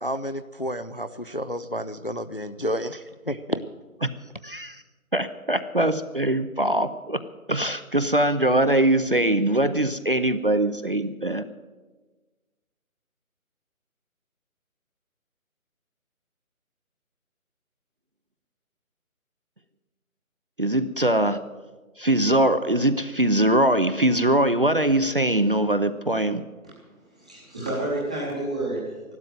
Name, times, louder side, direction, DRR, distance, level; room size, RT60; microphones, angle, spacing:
voice 1, 0.0-3.6, equal, 40° left, 12 dB, 0.4 m, -30 dB
voice 2, 4.4-4.8 5.1-7.2 7.5-11.4 20.6-21.4 22.0-26.4, right 1 dB, 40° right, 12 dB, 0.5 m, -22 dB
voice 3, 27.1-29.1, right 1 dB, 5° right, -7 dB, 0.9 m, -30 dB
14.5 x 12.0 x 7.5 m, 1.3 s
figure-of-eight pair, 155°, 43 cm